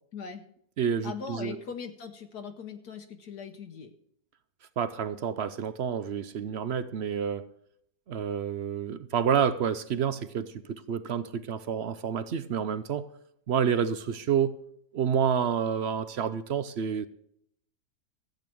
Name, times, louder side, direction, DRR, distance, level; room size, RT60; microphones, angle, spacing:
voice 1, 0.1-0.5 1.0-3.9, left 6 dB, 75° left, 1.5 m, -40 dB
voice 2, 0.8-1.6 4.8-7.5 8.1-13.1 13.5-14.6 14.9-17.1, right 7 dB, 65° right, 0.6 m, -29 dB
14.5 x 8.6 x 6.2 m
omnidirectional pair, 1.7 m